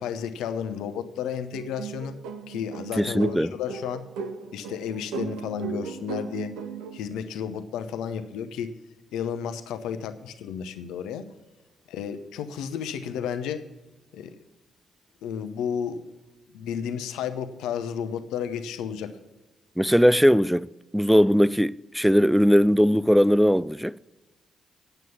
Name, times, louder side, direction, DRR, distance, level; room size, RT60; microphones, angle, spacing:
voice 1, 0.0-2.1 2.5-4.0 4.5-6.5 6.9-8.7 9.1-11.2 11.9-13.6 14.1-14.4 15.2-16.1 16.5-19.2, left 8 dB, 75° left, 0.8 m, -32 dB
sound 1, 1.5-7.0, right 6 dB, 75° right, 0.8 m, -36 dB
voice 2, 3.0-3.5 19.8-20.7 20.9-23.9, equal, ahead, 0.3 m, -19 dB
9.2 x 8.0 x 7.1 m
hypercardioid pair, 45°, 0 cm